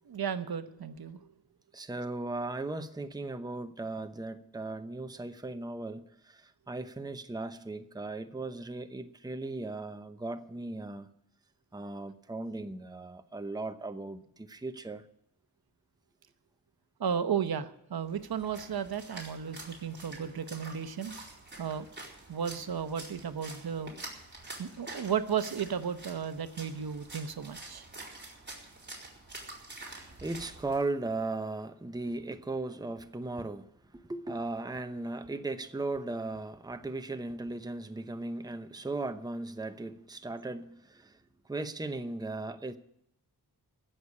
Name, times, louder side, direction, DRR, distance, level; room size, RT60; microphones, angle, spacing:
voice 1, 0.1-1.2 17.0-21.1 21.6-21.9 22.3-23.9 24.6-27.8, right 7 dB, 65° right, 1.0 m, -34 dB
voice 2, 1.7-11.1 11.7-15.0 30.2-41.1 41.5-42.8, right 2 dB, 10° right, 0.8 m, -37 dB
Splash splatter, 18.1-30.8, right 2 dB, 25° right, 4.4 m, -47 dB
15.5 x 6.6 x 9.8 m
cardioid pair, 75°, 41 cm